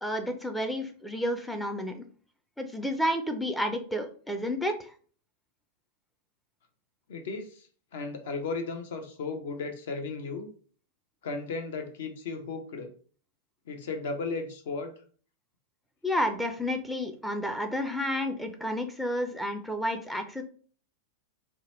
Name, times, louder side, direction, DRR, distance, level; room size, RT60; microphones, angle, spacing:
voice 1, 0.0-2.0 2.6-4.9 16.0-20.4, equal, 5° left, 5 dB, 0.4 m, -31 dB
voice 2, 7.1-10.5 11.2-12.9 13.7-14.9, left 4 dB, 60° left, 5 dB, 0.6 m, -35 dB
2.9 x 2.2 x 3.0 m, 0.43 s
figure-of-eight pair, 90°, 0 cm